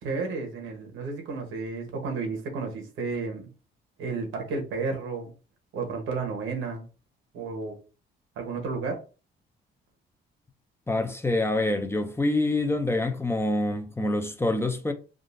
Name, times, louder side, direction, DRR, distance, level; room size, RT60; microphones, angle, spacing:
voice 1, 0.0-3.4 4.0-5.3 5.7-6.9 7.3-7.7 8.4-9.0, right 4 dB, 85° right, 1.1 m, -32 dB
voice 2, 10.9-14.9, left 2 dB, 10° left, 0.5 m, -26 dB
3.6 x 2.4 x 2.5 m
cardioid pair, 90°, 20 cm